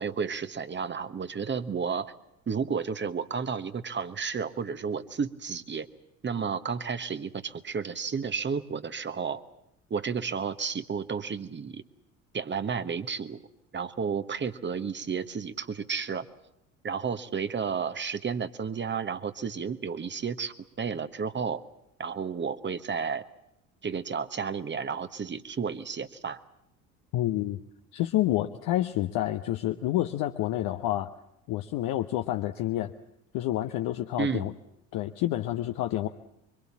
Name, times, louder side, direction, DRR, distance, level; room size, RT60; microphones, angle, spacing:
voice 1, 0.0-2.1 2.5-5.9 6.2-9.4 9.9-11.8 12.3-13.4 13.7-16.3 16.8-21.6 22.0-23.2 23.8-26.4 34.2-34.5, right 6 dB, 25° right, 11 dB, 1.3 m, -32 dB
voice 2, 27.1-27.6 27.9-31.1 31.5-32.9 33.3-34.5 34.9-36.1, left 14 dB, 50° left, 6 dB, 1.1 m, -28 dB
25.0 x 24.0 x 7.3 m, 0.80 s
figure-of-eight pair, 55°, 43 cm